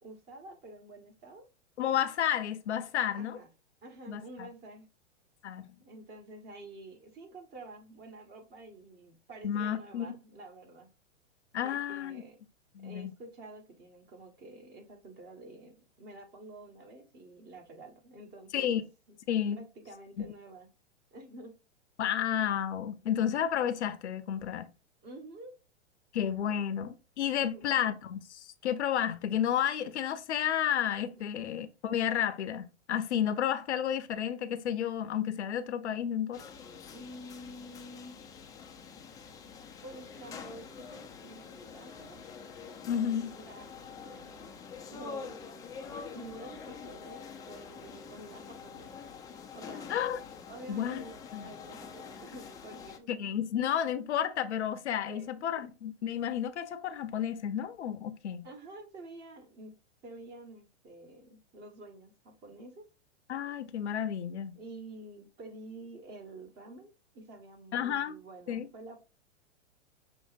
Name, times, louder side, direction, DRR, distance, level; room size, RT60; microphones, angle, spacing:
voice 1, 0.0-1.5 3.1-3.5 3.8-4.9 5.8-10.9 11.6-12.4 12.8-18.6 19.5-20.7 21.1-21.5 25.0-25.6 27.4-27.8 31.2-31.3 36.9-38.2 39.8-41.4 41.7-42.2 43.2-44.5 44.9-45.4 46.1-48.9 49.5-50.0 50.5-51.1 51.4-53.1 55.1-55.5 58.4-59.7 60.0-62.9 64.5-69.0, right 2 dB, 30° right, 1.6 m, -49 dB
voice 2, 1.8-3.4 4.1-4.5 5.4-5.7 9.4-10.2 11.5-12.2 12.8-13.1 18.5-18.8 19.3-19.6 20.2-20.3 22.0-24.7 26.1-36.4 42.9-43.4 49.9-50.2 50.7-51.0 51.3-51.4 53.1-58.5 63.3-64.6 67.7-68.2 68.5-68.7, left 9 dB, 70° left, 0.7 m, -31 dB
sound 1, 36.3-53.0, left 6 dB, 10° left, 0.4 m, -46 dB
6.3 x 3.2 x 2.6 m
hypercardioid pair, 115°, 36 cm